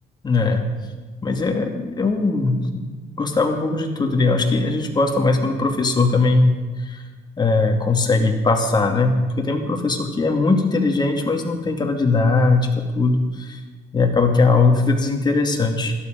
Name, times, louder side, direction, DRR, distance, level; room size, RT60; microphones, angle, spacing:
voice 1, 0.2-0.6 1.2-2.8 3.2-7.0 7.4-13.6 13.9-16.0, left 3 dB, 25° left, 3 dB, 2.5 m, -20 dB
17.0 x 13.0 x 5.3 m, 1.3 s
cardioid pair, 110°, 17 cm